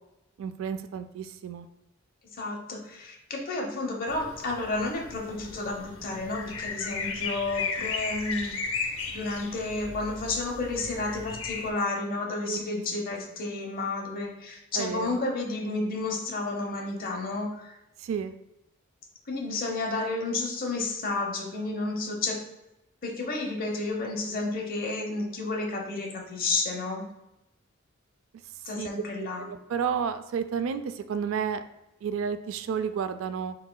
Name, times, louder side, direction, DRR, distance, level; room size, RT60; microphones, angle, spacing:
voice 1, 0.4-1.7 12.5-12.6 14.7-15.2 18.0-18.3 28.8-28.9 29.2-31.6 32.0-33.6, right 7 dB, 70° right, 11 dB, 0.3 m, -31 dB
voice 2, 2.4-8.6 9.1-17.8 19.3-22.4 23.0-27.1 28.6-29.4, left 2 dB, 45° left, 0 dB, 0.8 m, -31 dB
sound 1, 4.1-11.7, left 5 dB, 75° left, 0.6 m, -36 dB
4.5 x 3.9 x 2.2 m, 0.92 s
head